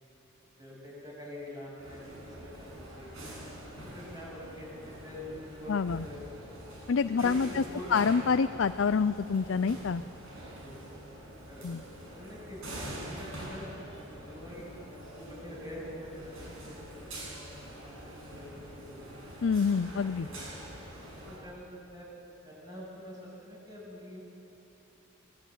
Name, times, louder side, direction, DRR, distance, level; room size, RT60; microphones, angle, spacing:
voice 1, 0.6-3.1 3.8-6.6 7.0-8.0 10.6-10.8 11.5-12.6 13.0-13.7 14.1-19.2 20.1-20.4 21.1-22.1 22.4-24.2, left 1 dB, 15° right, -6 dB, 7.8 m, -46 dB
sound 1, 1.8-21.4, right 1 dB, 70° right, 7.5 m, -45 dB
voice 2, 5.7-6.0 6.9-7.6 7.9-10.0 11.6-11.8 19.4-20.3, left 5 dB, 60° left, 12 dB, 0.4 m, -27 dB
22.5 x 18.0 x 9.2 m, 2.9 s
head